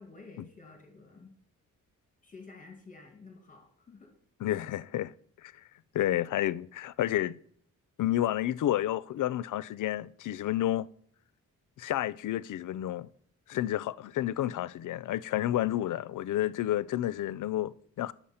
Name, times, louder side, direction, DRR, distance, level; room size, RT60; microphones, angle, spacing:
voice 1, 0.0-1.4 2.2-4.2, left 3 dB, 25° left, 1.9 m, -51 dB
voice 2, 4.4-5.1 5.4-5.5 5.9-7.4 8.0-10.9 11.8-13.1 13.5-18.1, left 13 dB, 75° left, 0.5 m, -30 dB
10.0 x 7.1 x 5.6 m
wide cardioid pair, 130°, 31 cm